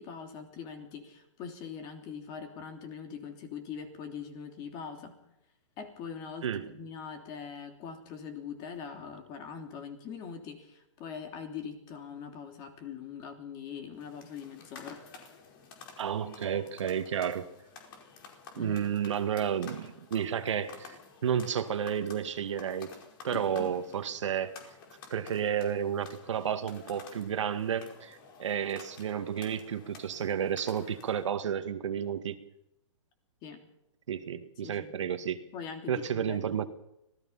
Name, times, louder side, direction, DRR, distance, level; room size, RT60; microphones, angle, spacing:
voice 1, 0.0-5.2 5.8-15.0 18.6-18.8 23.3-23.8 33.4-33.6 34.6-35.1 35.5-36.4, left 6 dB, 25° left, 5 dB, 3.1 m, -42 dB
sound 1, 14.0-31.3, left 5 dB, 45° left, 4.9 m, -52 dB
voice 2, 16.0-17.5 18.6-22.9 23.2-24.5 25.1-32.4 34.1-35.4 35.9-36.7, right 8 dB, 65° right, 8 dB, 2.1 m, -31 dB
25.5 x 17.5 x 5.8 m, 0.84 s
hypercardioid pair, 155°, 16 cm